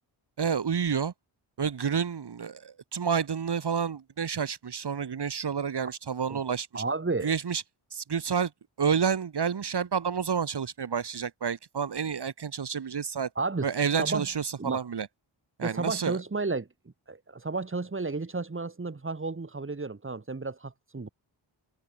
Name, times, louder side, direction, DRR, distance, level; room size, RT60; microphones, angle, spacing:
voice 1, 0.4-1.1 1.6-6.8 7.2-7.6 7.9-8.5 8.8-13.3 13.6-15.1 15.6-16.2, right 7 dB, 50° right, 1.8 m, -29 dB
voice 2, 6.7-7.3 13.4-13.7 14.0-14.3 14.6-14.8 15.6-16.7 17.1-21.1, right 3 dB, 25° right, 2.1 m, -32 dB
wide cardioid pair, 90°, 50 cm